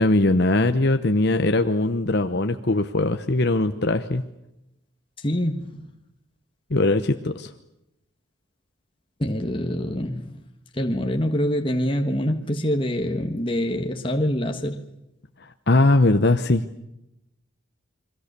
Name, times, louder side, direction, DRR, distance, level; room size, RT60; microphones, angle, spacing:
voice 1, 0.0-4.2 6.7-7.5 15.7-16.6, left 2 dB, 55° left, 8 dB, 1.0 m, -20 dB
voice 2, 5.2-5.8 9.2-10.4 10.7-14.8, equal, 25° left, 4 dB, 1.5 m, -25 dB
30.0 x 23.0 x 6.9 m, 0.87 s
head